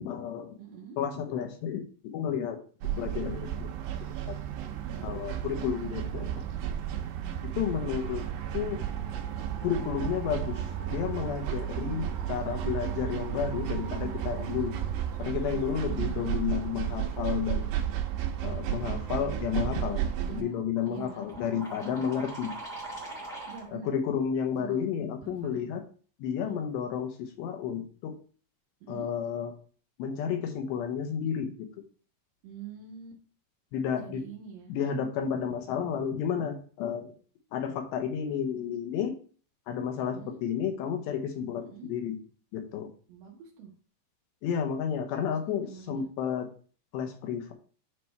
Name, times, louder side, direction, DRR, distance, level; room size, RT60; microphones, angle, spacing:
voice 1, 0.0-0.5 1.0-1.9 2.1-2.6 3.0-3.7 4.0-4.4 5.0-6.3 7.6-8.2 8.5-8.8 9.6-10.6 10.9-14.7 15.2-17.7 18.4-20.0 20.3-22.5 23.7-25.8 26.2-28.1 28.9-29.5 30.0-31.5 33.7-34.2 34.7-37.1 37.5-39.1 39.7-42.2 42.5-42.9 44.4-46.5 46.9-47.5, left 8 dB, 80° left, 5 dB, 2.9 m, -31 dB
voice 2, 0.6-1.0 4.8-5.1 11.7-12.1 15.8-16.2 20.2-20.6 20.9-22.0 23.5-23.9 24.6-24.9 25.2-25.7 26.4-26.7 28.8-29.1 32.4-33.2 33.9-34.7 40.0-40.4 41.6-41.9 43.1-43.7 45.1-46.1, right 7 dB, 70° right, -1 dB, 3.1 m, -45 dB
sound 1, 2.8-20.4, right 10 dB, 85° right, 3.2 m, -33 dB
sound 2, 8.7-23.7, right 2 dB, 45° left, 0.7 m, -47 dB
9.6 x 3.4 x 4.3 m, 0.41 s
omnidirectional pair, 5.2 m